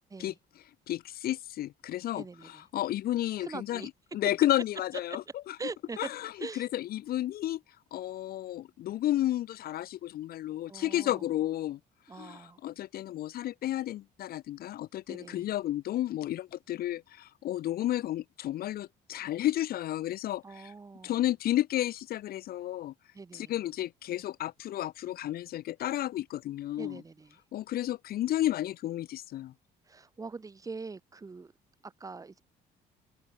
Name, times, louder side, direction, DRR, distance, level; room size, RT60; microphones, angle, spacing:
voice 1, 0.9-5.6 6.0-7.6 7.9-11.8 12.2-20.7 21.0-22.9 23.3-27.0 27.5-29.5, left 13 dB, 65° left, 1.0 m, -32 dB
voice 2, 2.2-2.7 3.4-3.9 5.6-6.1 6.4-6.7 10.7-11.3 12.1-12.6 15.1-15.5 20.4-21.2 23.1-23.5 26.8-27.4 29.9-31.5 31.8-32.4, right 4 dB, 20° right, 1.4 m, -43 dB
open air
cardioid pair, 110°, 17 cm